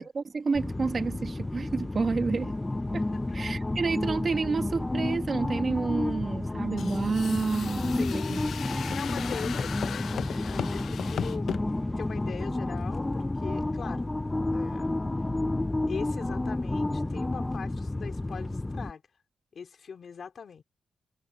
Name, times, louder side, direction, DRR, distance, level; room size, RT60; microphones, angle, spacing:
voice 1, 0.0-2.5 2.9-3.1 3.3-8.4 8.9-9.0, right 4 dB, 35° right, 1.4 m, -30 dB
sound 1, 0.5-18.9, left 2 dB, 15° left, 0.4 m, -31 dB
voice 2, 3.1-3.6 7.9-8.5 8.9-11.5 12.0-14.0 14.5-14.9 15.9-19.0 19.5-20.6, left 6 dB, 50° left, 3.9 m, -41 dB
sound 2, 6.8-11.6, left 8 dB, 70° left, 0.5 m, -36 dB
wide cardioid pair, 155°, 0 cm